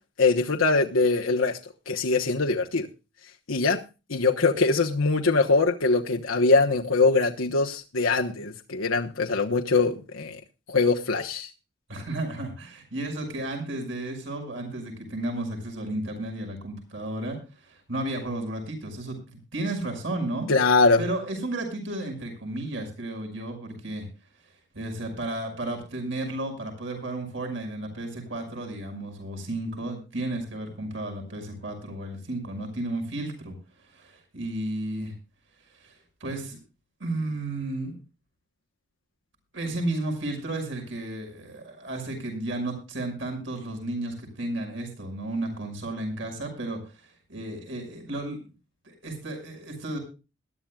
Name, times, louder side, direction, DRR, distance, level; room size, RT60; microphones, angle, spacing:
voice 1, 0.2-1.6 1.9-2.9 3.5-3.8 4.1-10.4 10.7-11.5 20.5-21.0, left 3 dB, 85° left, 1 dB, 1.1 m, -22 dB
voice 2, 11.9-20.5 21.0-24.1 24.7-33.5 33.8-35.1 35.7-35.9 36.2-36.6 37.0-38.0 39.5-48.4 48.8-50.0, right 1 dB, 65° right, 3 dB, 5.8 m, -33 dB
21.0 x 12.0 x 2.3 m, 0.30 s
head